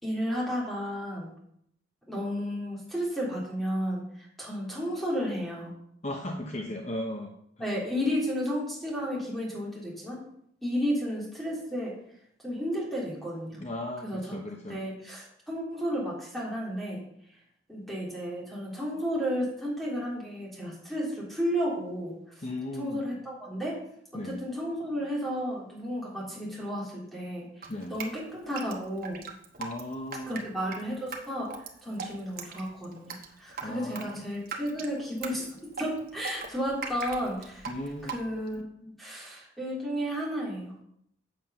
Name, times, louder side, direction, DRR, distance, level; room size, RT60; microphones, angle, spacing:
voice 1, 0.0-1.3 2.1-5.7 7.6-10.2 10.6-11.9 12.4-13.6 14.0-14.4 14.7-17.0 17.7-22.1 22.8-23.8 24.2-27.5 27.9-29.2 30.3-31.5 31.8-35.5 35.8-37.7 38.1-40.8, equal, ahead, -5 dB, 3.3 m, -32 dB
voice 2, 6.0-7.3 13.6-14.8 22.4-23.0 24.1-24.4 27.7-28.0 29.6-30.4 33.6-34.2 37.7-38.2, left 1 dB, 35° left, 2 dB, 0.8 m, -36 dB
Drip, 27.6-38.6, right 5 dB, 50° right, 1.2 m, -40 dB
7.9 x 7.5 x 5.6 m, 0.72 s
head